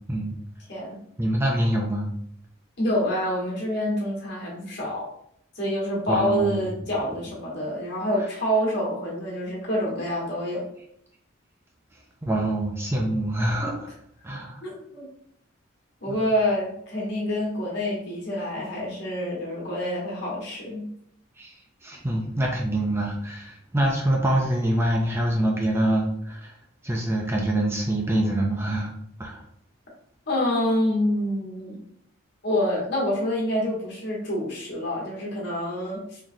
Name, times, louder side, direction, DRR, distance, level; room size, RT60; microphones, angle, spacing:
voice 1, 1.2-2.1 6.1-6.6 12.2-13.9 14.2-14.6 16.1-16.3 21.4-21.6 21.8-26.5 26.8-28.9 29.2-29.4, right 1 dB, 10° right, -1 dB, 0.4 m, -25 dB
voice 2, 2.8-5.1 5.5-10.7 14.6-15.0 16.0-20.9 30.3-31.8 32.4-36.2, equal, 55° left, -4 dB, 1.4 m, -27 dB
3.9 x 3.0 x 2.7 m, 0.71 s
head